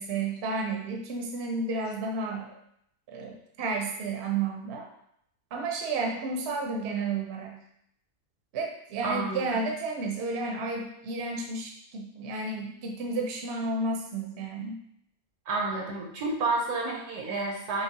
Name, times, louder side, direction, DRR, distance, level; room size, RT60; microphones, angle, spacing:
voice 1, 0.0-2.5 3.1-4.9 5.5-7.6 8.5-14.8, right 3 dB, 55° right, 0 dB, 0.8 m, -32 dB
voice 2, 9.0-9.6 15.5-17.8, right 3 dB, 90° right, -1 dB, 1.4 m, -30 dB
5.7 x 2.0 x 2.8 m, 0.73 s
omnidirectional pair, 1.6 m